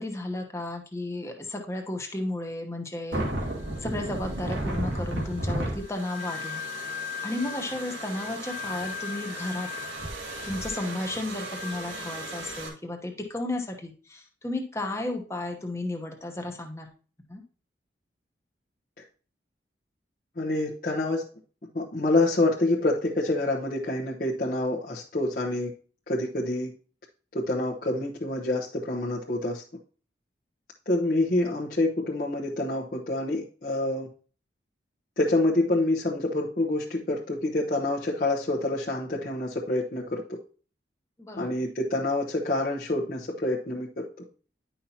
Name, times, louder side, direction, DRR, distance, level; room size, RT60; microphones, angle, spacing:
voice 1, 0.0-3.2 3.8-6.6 7.2-9.7 10.4-16.9 17.3-17.4 41.2-41.5, left 2 dB, 15° left, 4 dB, 1.0 m, -33 dB
sound 1, 3.1-12.7, equal, 85° right, 1.9 m, -34 dB
voice 2, 20.4-21.2 21.7-25.7 26.1-26.7 27.3-29.6 30.9-34.1 35.2-40.2 41.4-44.0, left 2 dB, 50° left, -5 dB, 1.0 m, -27 dB
10.0 x 5.6 x 2.8 m, 0.39 s
head